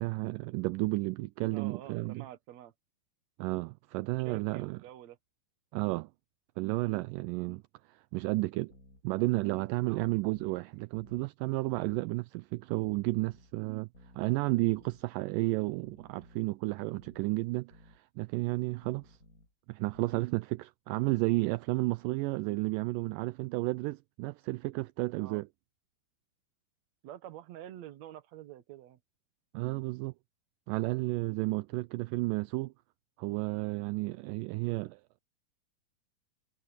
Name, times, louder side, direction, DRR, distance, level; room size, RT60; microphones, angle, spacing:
voice 1, 0.0-2.2 3.4-4.8 5.7-6.1 6.6-7.6 7.9-8.7 9.0-13.9 14.2-19.2 19.7-25.5 29.5-30.1 30.7-32.7 33.2-35.0, right 21 dB, 80° right, 2.0 m, -32 dB
voice 2, 1.5-2.7 4.3-5.2 9.9-10.1 25.2-25.4 27.0-29.0, right 12 dB, 60° right, 2.2 m, -47 dB
sound 1, 8.7-9.0 9.8-10.5 10.9-11.3 11.7-12.0 12.8-13.5 13.9-14.3 14.7-15.0 15.8-16.5 16.9-17.3 17.7-18.0 18.8-19.5 19.9-20.3, left 1 dB, 25° left, 6.5 m, -58 dB
omnidirectional pair, 4.2 m